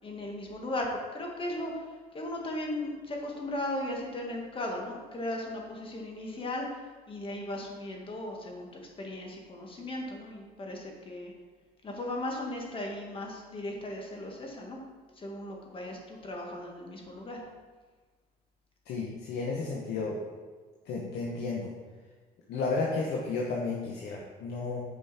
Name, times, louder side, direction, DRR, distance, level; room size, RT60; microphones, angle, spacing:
voice 1, 0.0-0.9 1.1-1.8 2.1-6.7 7.1-8.7 9.0-11.3 11.8-14.8 15.2-17.4, left 1 dB, 30° left, 0 dB, 1.9 m, -37 dB
voice 2, 18.9-20.2 20.9-21.7 22.5-24.8, left 3 dB, 70° left, -2 dB, 1.3 m, -32 dB
9.6 x 5.4 x 4.3 m, 1.4 s
cardioid pair, 110°, 17 cm